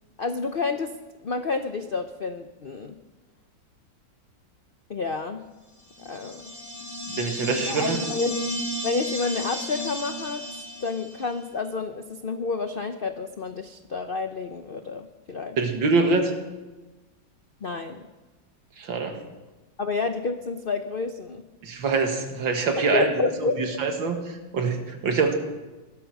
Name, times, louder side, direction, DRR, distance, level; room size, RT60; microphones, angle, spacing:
voice 1, 0.2-1.0 1.2-3.0 4.9-5.4 6.0-6.4 7.6-8.4 8.8-10.5 10.8-15.6 17.6-18.1 19.8-21.4 22.8-23.6, left 4 dB, 70° left, 8 dB, 0.5 m, -29 dB
sound 1, 5.9-11.3, left 1 dB, 10° left, 1.8 m, -33 dB
voice 2, 7.1-8.0 15.6-16.3 18.8-19.2 21.6-23.1 23.4-25.3, right 4 dB, 80° right, 4 dB, 2.5 m, -24 dB
18.5 x 12.5 x 6.0 m, 1.2 s
omnidirectional pair, 2.1 m